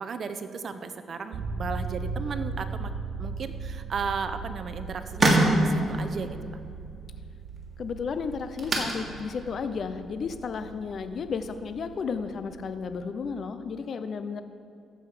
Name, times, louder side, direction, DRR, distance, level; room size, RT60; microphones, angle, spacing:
voice 1, 0.0-2.9 3.2-6.4, right 5 dB, 50° right, 10 dB, 0.8 m, -35 dB
sound 1, 1.3-13.2, right 4 dB, 65° right, 1.4 m, -38 dB
sound 2, 4.3-11.6, right 1 dB, 35° right, 2.6 m, -30 dB
voice 2, 7.8-14.4, left 5 dB, 55° left, 10 dB, 0.6 m, -33 dB
15.0 x 7.9 x 5.0 m, 2.4 s
cardioid pair, 90°, 0 cm